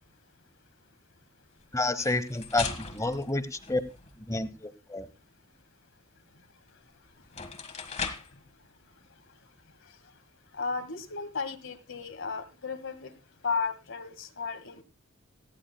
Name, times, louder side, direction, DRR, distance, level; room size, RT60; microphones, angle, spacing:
voice 1, 1.7-3.8 4.3-5.1, left 2 dB, 15° left, 14 dB, 1.0 m, -29 dB
sound 1, 1.8-4.2 6.7-6.8 7.2-8.4, left 5 dB, 35° left, 1.7 m, -38 dB
voice 2, 10.5-13.1 13.4-14.8, left 4 dB, 65° left, 9 dB, 1.9 m, -34 dB
18.0 x 13.5 x 2.3 m, 0.27 s
head